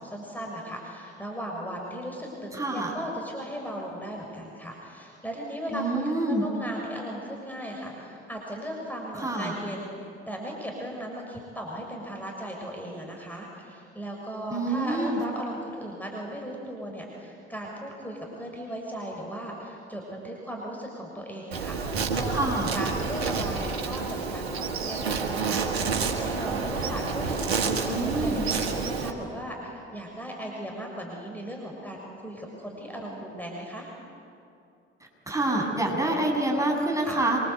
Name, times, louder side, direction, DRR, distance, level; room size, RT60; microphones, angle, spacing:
voice 1, 0.0-33.9 37.0-37.2, equal, 5° left, 0 dB, 6.8 m, -37 dB
voice 2, 2.5-2.9 5.7-6.4 9.2-9.5 14.5-15.2 22.3-22.7 27.9-28.4 35.3-37.4, right 2 dB, 10° right, 0 dB, 8.0 m, -27 dB
Insect, 21.5-29.1, right 5 dB, 90° right, 1.9 m, -29 dB
27.5 x 25.0 x 8.4 m, 2.6 s
hypercardioid pair, 50°, 31 cm